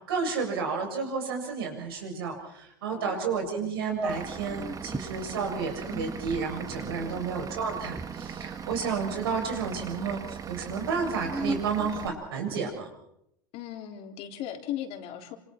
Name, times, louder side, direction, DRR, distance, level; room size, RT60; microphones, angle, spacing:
voice 1, 0.1-12.9, right 5 dB, 85° right, 2 dB, 7.2 m, -31 dB
voice 2, 2.8-3.2 6.9-7.2 13.5-15.4, left 11 dB, 55° left, 4 dB, 3.5 m, -37 dB
sound 1, 3.4-3.5 3.9-5.1 5.7-9.2 9.5-10.2 10.8-12.8, right 2 dB, 5° right, 1.0 m, -38 dB
Vehicle / Engine, 4.1-12.1, right 7 dB, 30° right, 1.5 m, -39 dB
27.0 x 26.5 x 4.5 m, 0.77 s
supercardioid pair, 105°, 12 cm